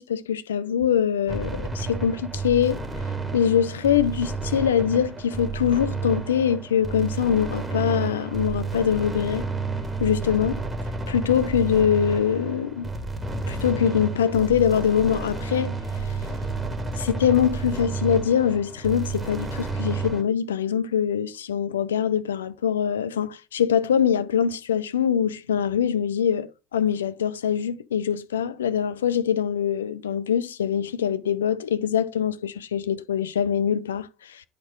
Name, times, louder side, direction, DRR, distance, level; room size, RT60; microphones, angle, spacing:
voice 1, 0.0-2.8 3.3-9.4 10.0-10.6 11.1-12.9 13.5-15.7 17.0-34.4, left 8 dB, 80° left, 0.4 m, -23 dB
sound 1, 1.3-20.2, right 4 dB, 15° right, 1.7 m, -31 dB
9.7 x 4.4 x 3.7 m
figure-of-eight pair, 60°, 0 cm